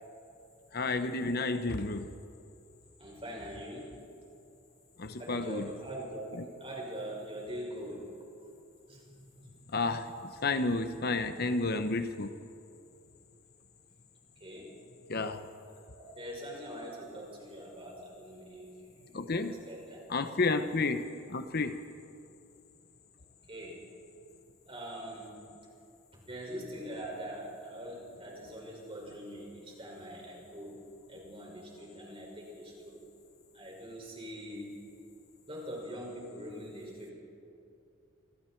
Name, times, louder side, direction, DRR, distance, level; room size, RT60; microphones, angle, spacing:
voice 1, 0.7-2.1 5.0-5.7 6.4-6.5 9.7-12.3 15.1-15.4 19.1-19.6 20.1-21.8, left 3 dB, 50° left, 9 dB, 0.9 m, -31 dB
voice 2, 3.0-3.9 5.2-8.0 8.9-9.5 14.4-14.7 16.0-18.7 18.9-20.0 20.3-20.4 23.5-23.8 24.7-25.4 26.1-30.8 31.1-33.0 33.5-34.7 35.5-37.1, equal, 25° right, -2 dB, 6.1 m, -43 dB
28.0 x 26.5 x 4.6 m, 2.7 s
head